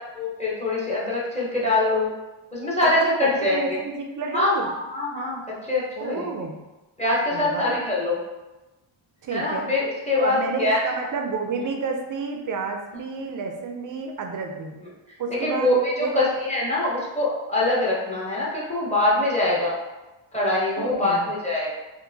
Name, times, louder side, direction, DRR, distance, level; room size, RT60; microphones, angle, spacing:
voice 1, 0.1-2.1 2.5-3.8 4.3-6.3 7.0-8.2 9.3-10.8 15.4-19.8 20.3-21.7, left 2 dB, 15° left, -6 dB, 0.7 m, -24 dB
voice 2, 2.8-4.7 6.0-6.6 7.3-7.8 9.2-9.7 10.2-14.8 15.2-16.3 20.8-21.2, right 4 dB, 45° right, 4 dB, 0.4 m, -30 dB
4.4 x 2.5 x 2.6 m, 1.1 s
wide cardioid pair, 170°, 49 cm